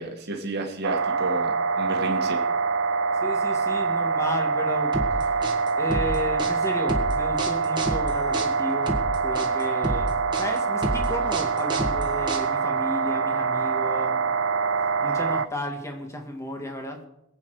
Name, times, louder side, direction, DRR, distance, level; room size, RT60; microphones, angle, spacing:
voice 1, 0.0-2.4, right 2 dB, 55° right, 2 dB, 2.2 m, -31 dB
sound 1, 0.8-15.5, right 5 dB, 80° right, 0.7 m, -25 dB
voice 2, 3.2-5.4 5.8-14.2 14.8-17.1, left 1 dB, 15° left, 3 dB, 2.2 m, -33 dB
sound 2, 4.9-12.8, right 1 dB, 25° right, 1.9 m, -30 dB
22.0 x 8.6 x 5.0 m, 0.81 s
head